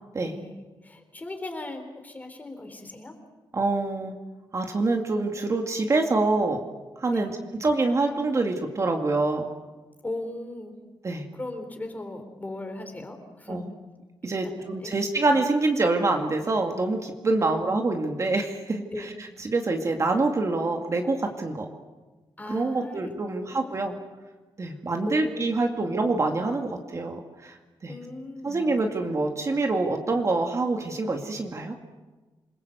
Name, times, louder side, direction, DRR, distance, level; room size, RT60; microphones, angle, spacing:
voice 1, 0.2-3.1 7.1-7.3 10.0-10.8 11.3-13.7 14.4-15.0 17.4-17.7 18.9-19.1 22.4-23.9 25.1-25.9 27.9-28.6, left 2 dB, 20° left, 6 dB, 3.8 m, -38 dB
voice 2, 3.5-4.1 4.5-6.6 7.0-7.3 7.6-9.4 11.0-11.3 13.5-13.6 14.2-19.1 19.4-21.7 22.5-23.9 24.6-27.6 27.8-27.9 28.4-31.8, right 3 dB, 35° right, 3 dB, 2.3 m, -26 dB
28.0 x 21.5 x 8.1 m, 1.2 s
wide cardioid pair, 140°, 9 cm